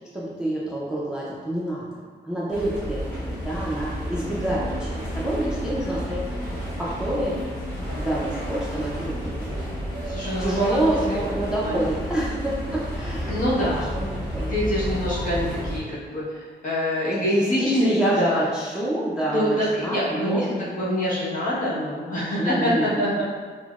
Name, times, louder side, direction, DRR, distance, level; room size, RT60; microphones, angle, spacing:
voice 1, 0.1-6.2 6.8-7.3 7.9-9.5 10.4-13.4 13.8-14.5 17.1-20.6 22.4-23.2, right 1 dB, 5° right, -6 dB, 0.3 m, -27 dB
sound 1, 2.5-15.8, equal, 10° left, 1.0 m, -31 dB
voice 2, 10.1-10.8 11.1-11.2 11.6-11.8 13.3-13.9 14.5-18.4 19.3-23.2, equal, 45° left, -8 dB, 1.0 m, -25 dB
5.7 x 2.0 x 2.3 m, 1.5 s
wide cardioid pair, 170°, 19 cm